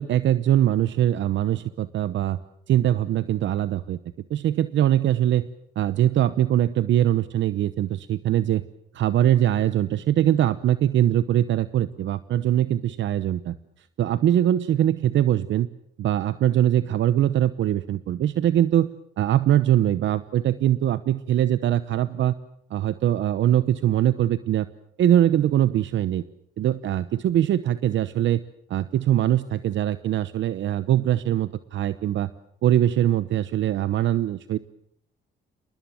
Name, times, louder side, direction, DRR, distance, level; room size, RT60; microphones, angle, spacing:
voice 1, 0.0-2.4 2.7-4.0 4.3-5.5 5.8-8.6 8.9-13.6 14.0-15.7 16.0-18.9 19.2-22.4 22.7-24.7 25.0-26.2 26.6-28.4 28.7-32.3 32.6-34.6, right 11 dB, 70° right, 15 dB, 0.9 m, -22 dB
28.0 x 20.5 x 7.7 m, 0.69 s
cardioid pair, 90°, 20 cm